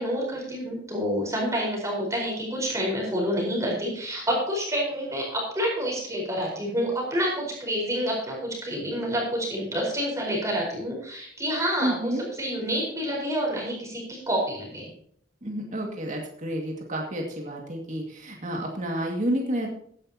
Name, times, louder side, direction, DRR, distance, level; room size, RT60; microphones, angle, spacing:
voice 1, 0.0-14.9, equal, 15° right, -2 dB, 4.7 m, -28 dB
voice 2, 11.8-12.2 15.4-19.7, right 1 dB, 40° right, 0 dB, 2.2 m, -30 dB
15.5 x 10.5 x 2.9 m, 0.63 s
head